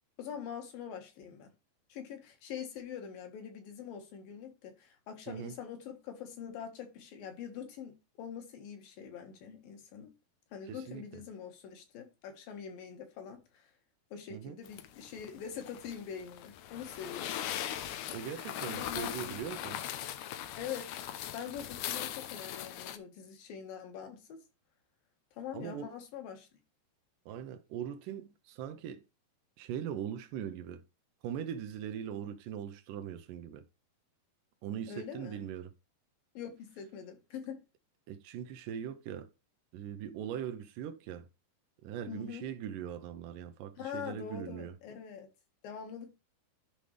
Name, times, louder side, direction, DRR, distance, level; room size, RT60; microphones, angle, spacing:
voice 1, 0.2-1.5 1.9-10.1 10.5-13.7 14.1-17.4 18.6-19.7 20.6-21.0 21.3-24.4 25.3-26.5 34.9-35.4 36.3-37.6 42.1-42.5 43.8-45.3 45.6-46.1, left 8 dB, 65° left, 3.1 m, -44 dB
voice 2, 10.7-11.2 14.3-14.6 18.1-19.8 25.5-25.9 27.3-29.0 29.6-30.8 31.2-33.6 34.6-35.7 38.1-39.3 39.7-41.3 41.8-44.7, right 9 dB, 85° right, 1.9 m, -40 dB
sound 1, 14.7-23.0, left 11 dB, 85° left, 1.7 m, -40 dB
12.0 x 5.2 x 3.3 m
omnidirectional pair, 4.6 m